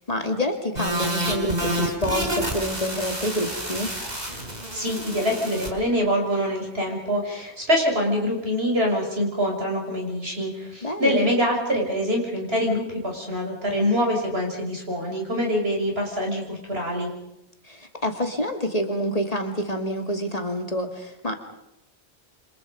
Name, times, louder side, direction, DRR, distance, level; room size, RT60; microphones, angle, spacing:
voice 1, 0.1-3.9 10.8-11.3 17.7-21.3, equal, 35° left, 4 dB, 2.6 m, -27 dB
sound 1, 0.8-5.7, right 1 dB, 40° right, 4.5 m, -29 dB
voice 2, 4.7-17.1, equal, 65° right, 0 dB, 6.5 m, -25 dB
28.5 x 26.5 x 5.3 m, 0.86 s
omnidirectional pair, 1.1 m